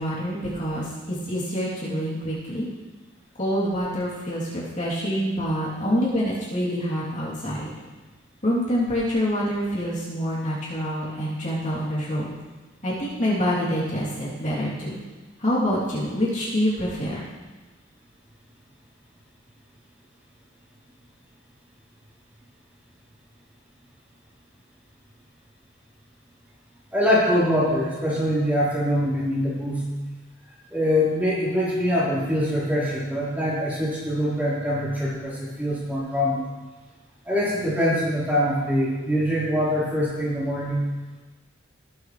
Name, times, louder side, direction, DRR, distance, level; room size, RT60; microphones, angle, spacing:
voice 1, 0.0-2.7 3.4-7.7 8.4-12.3 12.8-15.0 15.4-17.2, equal, 40° left, -8 dB, 3.0 m, -26 dB
voice 2, 26.9-29.9 30.7-36.4 37.2-40.9, equal, 10° right, -9 dB, 4.0 m, -24 dB
18.5 x 8.4 x 3.2 m, 1.3 s
head